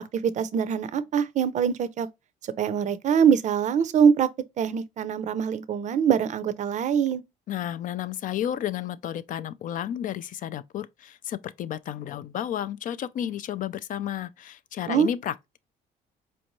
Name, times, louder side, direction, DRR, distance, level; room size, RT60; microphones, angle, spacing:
voice 1, 0.1-2.1 2.6-4.3 4.6-7.2 14.9-15.1, right 7 dB, 45° right, 0.5 m, -23 dB
voice 2, 7.5-15.6, left 10 dB, 50° left, 0.4 m, -32 dB
4.3 x 2.6 x 3.0 m
cardioid pair, 110°, 17 cm